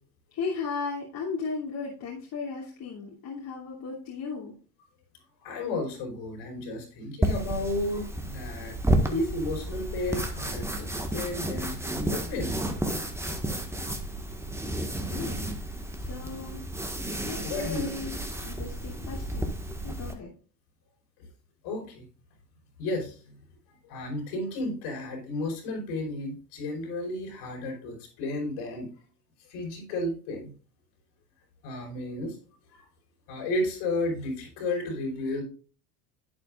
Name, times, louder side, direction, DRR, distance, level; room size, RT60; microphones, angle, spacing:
voice 1, 0.3-4.5 15.1-15.5 16.0-16.7 17.2-19.6 19.8-20.3, left 4 dB, 50° left, -5 dB, 3.0 m, -36 dB
voice 2, 5.4-8.7 9.1-12.5 17.4-17.8 21.6-22.0 22.8-23.2 23.8-28.9 29.5-30.5 31.6-32.4 32.7-32.9 33.3-35.4, left 2 dB, 70° left, 1 dB, 5.2 m, -33 dB
sound 1, 7.2-20.1, right 1 dB, 5° right, 1.6 m, -31 dB
11.5 x 8.3 x 2.5 m, 0.37 s
hypercardioid pair, 80°, 46 cm